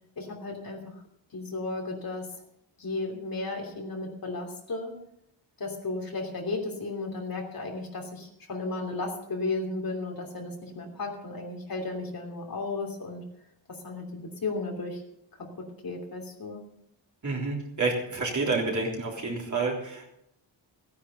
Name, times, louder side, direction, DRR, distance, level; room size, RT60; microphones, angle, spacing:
voice 1, 0.2-0.9 1.3-2.3 2.8-5.0 5.6-13.2 13.7-15.0 15.4-16.6, left 3 dB, 50° left, 1 dB, 3.1 m, -34 dB
voice 2, 17.2-20.1, right 3 dB, 40° right, -1 dB, 3.5 m, -29 dB
16.0 x 10.0 x 5.6 m, 0.78 s
wide cardioid pair, 150°, 46 cm